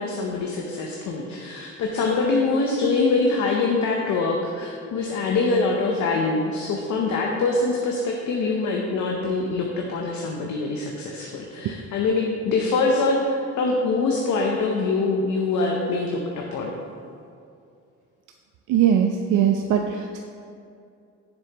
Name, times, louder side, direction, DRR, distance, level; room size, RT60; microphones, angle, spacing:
voice 1, 0.0-16.8, left 3 dB, 75° left, 0 dB, 0.8 m, -24 dB
voice 2, 18.7-20.2, right 9 dB, 75° right, 4 dB, 0.5 m, -20 dB
6.9 x 6.8 x 2.9 m, 2.5 s
cardioid pair, 90°, 30 cm